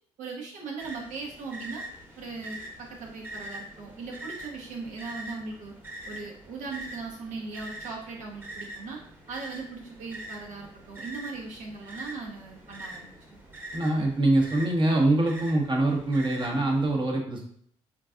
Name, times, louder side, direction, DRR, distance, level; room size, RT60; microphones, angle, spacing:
voice 1, 0.2-1.8 2.2-5.7 6.0-9.0 9.3-13.4, right 4 dB, 75° right, -1 dB, 1.0 m, -39 dB
sound 1, 0.8-16.9, right 1 dB, 15° right, 1.2 m, -44 dB
voice 2, 13.7-17.5, right 2 dB, 40° right, 0 dB, 1.0 m, -24 dB
3.8 x 2.6 x 2.4 m, 0.63 s
supercardioid pair, 70°, 13 cm